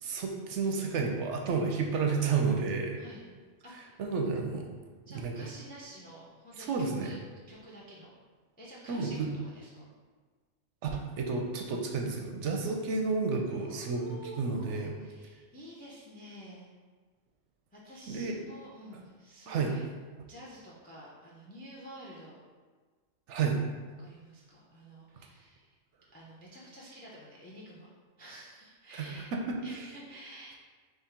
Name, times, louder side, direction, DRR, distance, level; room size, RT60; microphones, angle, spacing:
voice 1, 0.0-3.0 4.0-4.7 5.2-5.5 6.7-7.1 8.9-9.3 10.8-14.0 14.4-14.9 18.1-18.3 19.5-19.7 23.3-23.6 29.0-29.6, right 4 dB, 70° right, 2 dB, 0.9 m, -31 dB
voice 2, 2.9-3.3 3.6-4.0 5.1-7.2 7.5-8.1 8.6-9.2 9.4-9.9 13.5-16.7 17.7-19.8 20.2-22.4 24.0-25.7 26.1-27.9 28.2-29.3 29.6-30.5, right 1 dB, 10° left, -5 dB, 0.5 m, -49 dB
3.6 x 3.2 x 4.4 m, 1.4 s
omnidirectional pair, 1.4 m